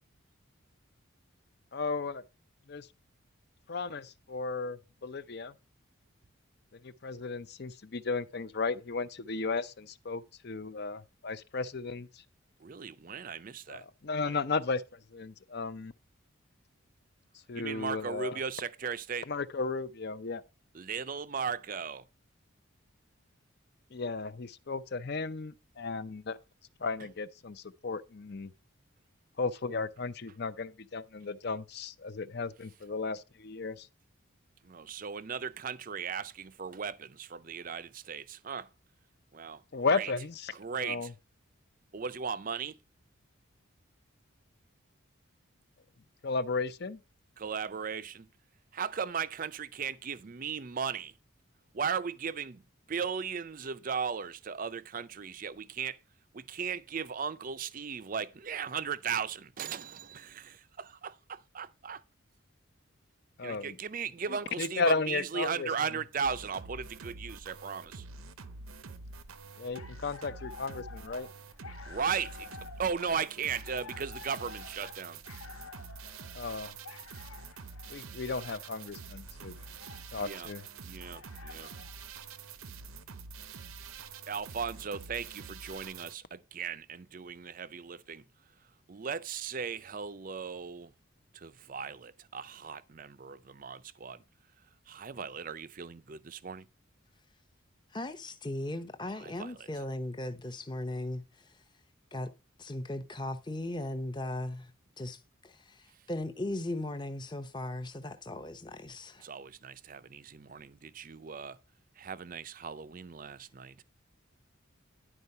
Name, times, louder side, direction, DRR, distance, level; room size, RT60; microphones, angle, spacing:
voice 1, 1.7-2.2 2.7-2.9 3.7-5.5 6.8-12.2 13.7-15.9 17.5-18.4 19.3-20.4 23.9-26.4 26.8-28.5 29.4-33.9 39.7-40.5 40.8-41.1 46.2-47.0 63.4-63.8 64.3-65.7 69.6-71.3 76.3-76.8 77.9-79.5 80.1-80.6, left 4 dB, 50° left, 0.6 m, -34 dB
voice 2, 12.6-13.8 17.5-19.3 20.7-22.0 34.6-38.7 39.3-39.6 39.9-40.1 40.6-41.1 41.9-42.8 47.4-48.3 48.7-51.1 51.7-52.6 52.9-56.0 56.3-62.0 63.4-68.1 71.9-72.5 72.8-75.2 80.2-80.5 80.8-81.7 84.3-88.2 88.9-90.9 91.3-94.2 94.9-96.7 99.1-99.7 109.2-111.6 112.0-113.8, right 6 dB, 40° right, 0.5 m, -37 dB
sound 1, 66.2-86.1, right 4 dB, 85° right, 0.8 m, -47 dB
sound 2, 69.5-82.0, left 4 dB, 90° left, 1.4 m, -51 dB
voice 3, 97.9-101.2 102.1-102.3 102.6-104.7 105.0-109.3, left 1 dB, 20° left, 0.8 m, -37 dB
11.0 x 4.6 x 5.4 m
head